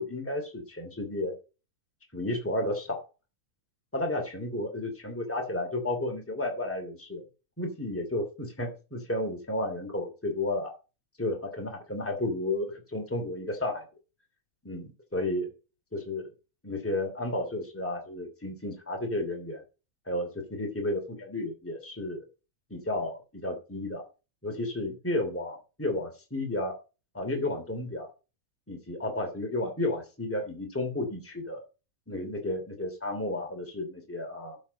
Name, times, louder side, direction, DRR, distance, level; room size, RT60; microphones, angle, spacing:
voice 1, 0.0-1.3 2.1-3.0 3.9-7.2 7.6-10.7 11.2-13.8 14.6-15.5 15.9-16.3 16.6-19.6 20.0-22.2 22.7-24.0 24.4-26.7 27.1-28.1 28.7-31.6 32.1-34.6, left 1 dB, 10° left, 2 dB, 0.8 m, -32 dB
13.0 x 7.2 x 4.2 m, 0.32 s
omnidirectional pair, 5.8 m